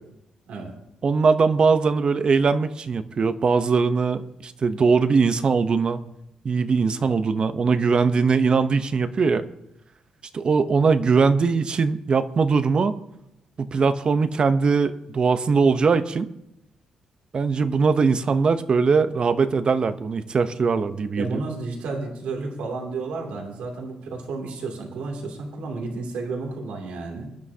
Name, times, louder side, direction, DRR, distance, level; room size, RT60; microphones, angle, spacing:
voice 1, 1.0-6.0 6.4-9.4 10.3-12.9 13.6-16.3 17.3-21.4, right 5 dB, 45° right, 11 dB, 0.8 m, -21 dB
voice 2, 21.2-27.3, right 3 dB, 90° right, 1 dB, 2.7 m, -32 dB
22.0 x 10.5 x 2.8 m, 0.83 s
cardioid pair, 90°, 2 cm